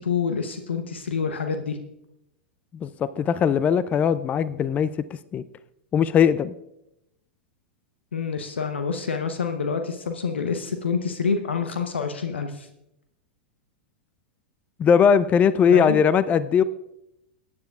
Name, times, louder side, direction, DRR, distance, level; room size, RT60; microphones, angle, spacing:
voice 1, 0.0-1.8 8.1-12.7 15.7-16.0, left 5 dB, 80° left, 6 dB, 0.8 m, -27 dB
voice 2, 2.7-4.9 5.3-5.4 5.9-6.5 14.8-16.6, left 7 dB, 25° left, 16 dB, 0.3 m, -19 dB
20.0 x 9.6 x 2.3 m, 0.85 s
figure-of-eight pair, 95°, 6 cm